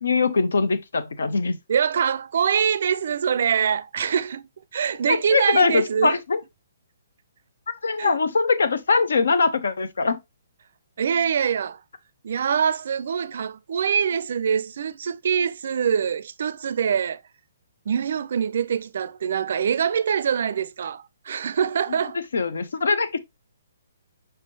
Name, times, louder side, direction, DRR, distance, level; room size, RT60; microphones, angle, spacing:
voice 1, 0.0-1.6 5.1-6.4 7.8-10.2 22.1-23.2, left 4 dB, 85° left, 0.7 m, -22 dB
voice 2, 1.7-4.4 4.7-6.1 8.0-8.1 11.0-11.8 12.2-17.2 17.9-22.2, right 7 dB, 60° right, 0.4 m, -24 dB
5.5 x 3.5 x 2.7 m
hypercardioid pair, 160°, 0 cm